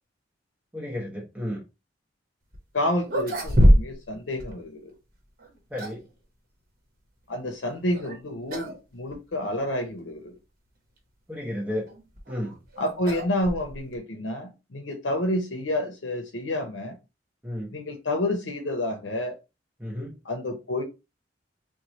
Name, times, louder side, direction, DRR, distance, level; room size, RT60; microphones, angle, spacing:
voice 1, 0.7-1.6 5.7-6.1 11.3-11.9 12.3-12.6 17.4-17.7 19.8-20.2, left 1 dB, 10° right, 0.9 m, -32 dB
sound 1, 2.5-2.6 3.0-4.1 4.4-4.5 5.4-6.1 7.9-8.2 8.5-8.8 9.1-9.2 10.0-10.1 11.9-14.0, equal, 50° right, 1.0 m, -23 dB
voice 2, 2.7-4.9 7.3-10.3 12.8-17.0 17.7-19.3 20.2-20.8, left 1 dB, 75° left, 0.7 m, -29 dB
3.0 x 2.2 x 3.9 m
head